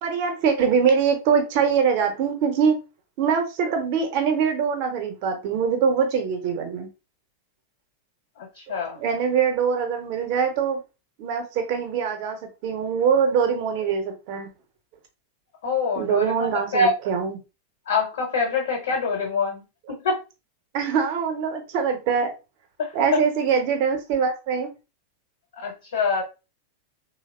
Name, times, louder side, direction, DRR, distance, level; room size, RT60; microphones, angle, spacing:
voice 1, 0.0-2.8 3.2-6.9 9.0-10.8 11.2-14.5 16.0-17.4 20.7-22.3 22.9-24.7, right 6 dB, 45° right, 0.7 m, -23 dB
voice 2, 8.4-9.0 15.6-16.9 17.9-19.6 19.9-20.2 22.8-23.2 25.6-26.2, left 4 dB, 60° left, 0.9 m, -25 dB
3.2 x 2.0 x 2.3 m
figure-of-eight pair, 90°, 0 cm